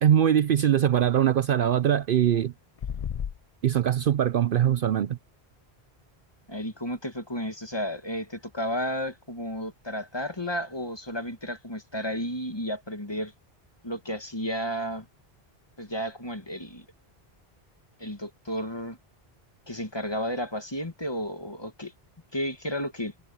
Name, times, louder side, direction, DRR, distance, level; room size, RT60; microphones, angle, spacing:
voice 1, 0.0-2.5 3.6-5.2, right 10 dB, 60° right, 0.7 m, -22 dB
sound 1, 2.8-3.4, left 8 dB, 50° left, 0.5 m, -32 dB
voice 2, 6.5-13.3 13.8-15.1 15.8-16.9 18.0-19.0 19.7-21.9 22.3-23.1, equal, 25° left, 2.0 m, -32 dB
omnidirectional pair, 1.1 m